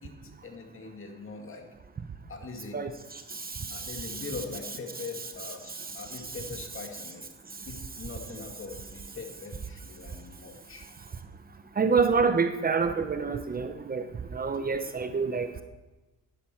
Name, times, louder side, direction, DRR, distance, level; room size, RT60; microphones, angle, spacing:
voice 1, 0.0-1.6 2.3-2.8 3.7-7.3 7.7-10.9, left 4 dB, 45° left, 3 dB, 2.2 m, -42 dB
voice 2, 2.7-4.2 11.8-14.0 14.3-15.5, right 5 dB, 30° right, 8 dB, 0.9 m, -27 dB
12.5 x 10.5 x 4.6 m, 1.1 s
cardioid pair, 90°, 30 cm